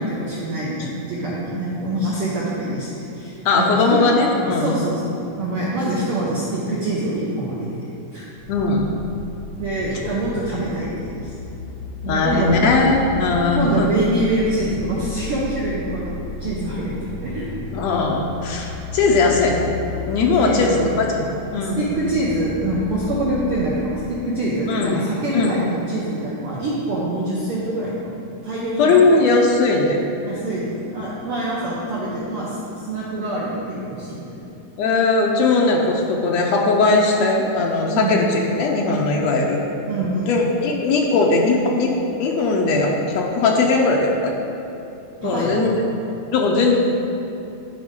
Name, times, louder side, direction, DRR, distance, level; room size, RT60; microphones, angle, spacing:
voice 1, 0.1-4.0 4.6-7.8 8.1-8.3 9.6-11.3 12.0-12.5 13.3-17.5 20.4-21.1 21.6-28.9 30.2-34.3 37.9-38.1 39.2-39.3 39.9-40.3 45.2-45.6, right 1 dB, 75° right, -6 dB, 1.2 m, -25 dB
voice 2, 3.4-4.7 8.5-8.8 12.1-13.9 17.7-19.7 20.0-21.9 24.7-25.0 25.3-25.6 28.8-30.0 34.8-39.6 40.3-41.9 42.2-44.4 45.2-45.7 46.3-46.8, left 3 dB, 85° left, -1 dB, 1.5 m, -19 dB
sound 1, 8.4-24.1, left 4 dB, 60° left, 2.3 m, -34 dB
12.5 x 5.1 x 3.7 m, 2.8 s
omnidirectional pair, 3.9 m